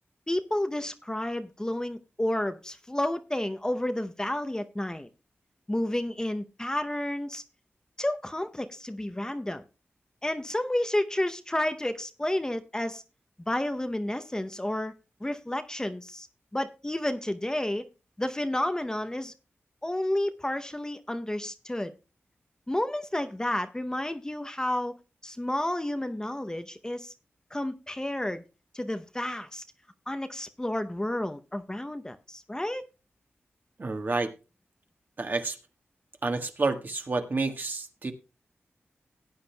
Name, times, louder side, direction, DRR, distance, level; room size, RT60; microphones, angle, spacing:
voice 1, 0.3-5.1 5.7-7.4 8.0-9.6 10.2-13.0 13.5-14.9 15.2-16.3 16.5-17.9 18.2-19.3 19.8-21.9 22.7-24.9 25.2-27.1 27.5-28.4 28.7-29.6 30.1-32.8, left 1 dB, 15° left, 0.7 m, -31 dB
voice 2, 33.8-34.3 35.2-35.6 36.2-38.1, right 3 dB, 45° right, 1.5 m, -29 dB
17.5 x 9.0 x 2.3 m
cardioid pair, 70°, 4 cm